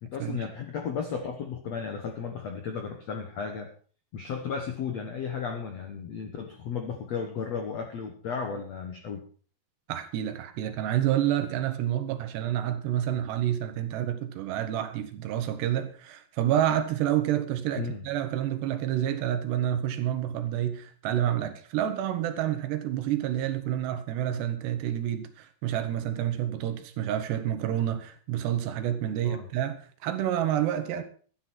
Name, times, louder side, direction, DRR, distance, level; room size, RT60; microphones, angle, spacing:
voice 1, 0.0-3.7 4.1-9.2 17.7-18.0 29.2-29.5, left 6 dB, 70° left, 1.6 m, -34 dB
voice 2, 9.9-29.8 30.0-31.0, right 11 dB, 75° right, 3.4 m, -28 dB
12.5 x 10.0 x 5.9 m
omnidirectional pair, 5.0 m